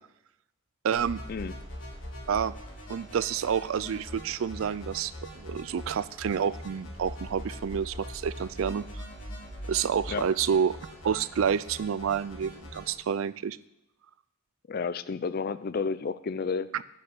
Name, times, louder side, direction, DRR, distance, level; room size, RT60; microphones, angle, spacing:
voice 1, 0.8-1.2 2.3-2.5 2.9-8.8 9.7-10.8 11.0-13.6 16.7-16.8, right 7 dB, 80° right, 17 dB, 0.4 m, -29 dB
un-synthesized Bass-Middle, 0.9-12.9, equal, 65° left, 3.8 m, -42 dB
voice 2, 14.7-16.7, left 5 dB, 45° left, 14 dB, 0.4 m, -31 dB
9.9 x 6.1 x 8.5 m, 0.89 s
head